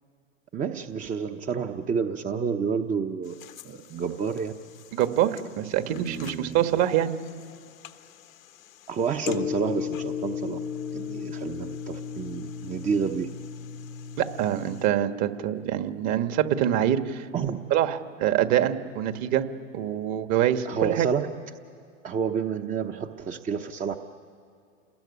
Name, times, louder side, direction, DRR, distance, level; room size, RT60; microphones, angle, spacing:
voice 1, 0.5-3.3 3.6-4.5 5.9-6.6 8.9-10.6 10.9-13.3 17.3-17.6 20.6-21.3 22.0-24.0, right 6 dB, 20° right, 6 dB, 0.9 m, -29 dB
sound 1, 3.3-14.9, left 8 dB, 80° left, 1.3 m, -36 dB
voice 2, 4.9-7.1 14.2-17.3 17.7-19.4 19.7-21.1, right 11 dB, 40° right, 9 dB, 1.6 m, -25 dB
29.0 x 20.5 x 9.8 m, 2.5 s
hypercardioid pair, 115°, 40 cm